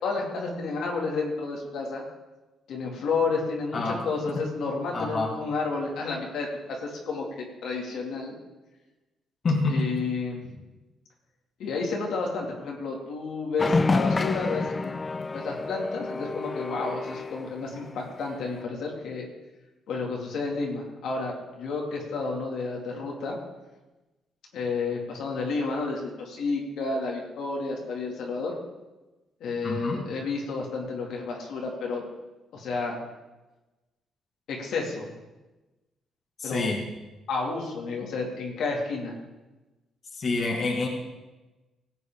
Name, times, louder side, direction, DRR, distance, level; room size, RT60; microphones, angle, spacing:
voice 1, 0.0-2.0 2.7-8.3 9.7-10.6 11.6-14.9 15.3-19.3 19.9-23.4 24.5-28.5 29.4-32.0 32.5-33.0 34.5-35.1 36.4-36.7 37.3-39.2, left 4 dB, 75° left, -1 dB, 2.4 m, -31 dB
voice 2, 4.9-5.3 9.4-9.7 29.6-30.0 36.4-36.8 40.1-40.9, left 3 dB, 45° left, 0 dB, 2.0 m, -27 dB
sound 1, 13.6-17.9 18.4-18.6, left 3 dB, 30° left, 0.3 m, -28 dB
16.5 x 8.3 x 3.7 m, 1.1 s
cardioid pair, 90°, 0 cm